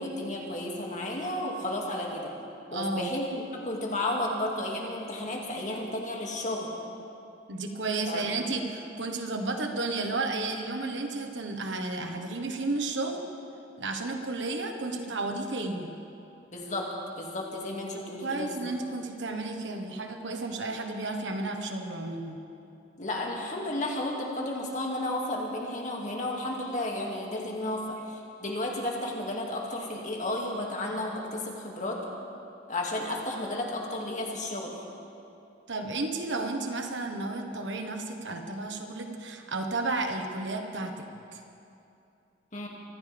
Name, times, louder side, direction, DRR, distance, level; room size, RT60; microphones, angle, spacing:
voice 1, 0.0-2.3 2.7-6.7 8.1-8.3 16.5-16.9 17.2-18.7 23.0-32.0 32.7-34.7 42.5-42.7, left 1 dB, 40° left, -1 dB, 2.3 m, -33 dB
voice 2, 2.7-3.1 7.5-13.2 13.8-15.9 17.9-22.4 35.7-41.0 41.3-41.4, right 2 dB, 80° right, 4 dB, 1.4 m, -32 dB
25.0 x 15.0 x 3.5 m, 2.7 s
head